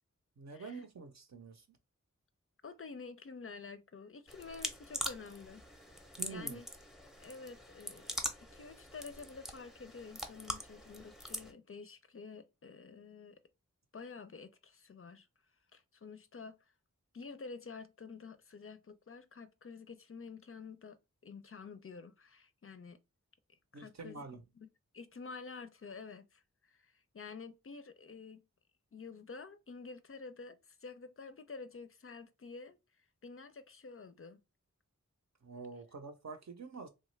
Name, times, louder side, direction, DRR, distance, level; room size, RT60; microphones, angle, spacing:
voice 1, 0.4-1.8 6.2-6.6 23.7-24.4 35.4-36.9, right 4 dB, 60° right, 0.7 m, -47 dB
voice 2, 2.6-5.6 6.3-6.7 7.2-13.4 13.9-15.3 15.7-16.7 17.1-21.0 21.2-23.0 23.5-24.2 24.6-24.7 24.9-28.4 28.9-34.4, left 4 dB, 45° left, 0.4 m, -49 dB
sound 1, 4.3-11.5, equal, ahead, 0.6 m, -43 dB
3.1 x 2.3 x 3.1 m
wide cardioid pair, 50°, 31 cm